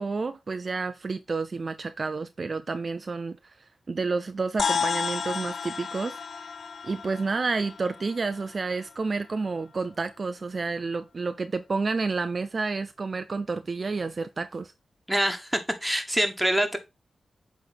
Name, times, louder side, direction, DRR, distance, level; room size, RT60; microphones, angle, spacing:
voice 1, 0.0-3.5 3.9-6.2 6.8-14.7, right 4 dB, 50° right, 0.5 m, -30 dB
sound 1, 4.6-9.2, left 6 dB, 70° left, 0.3 m, -32 dB
voice 2, 15.1-16.8, equal, 5° right, 1.4 m, -25 dB
7.8 x 3.2 x 4.0 m
cardioid pair, 60°, 0 cm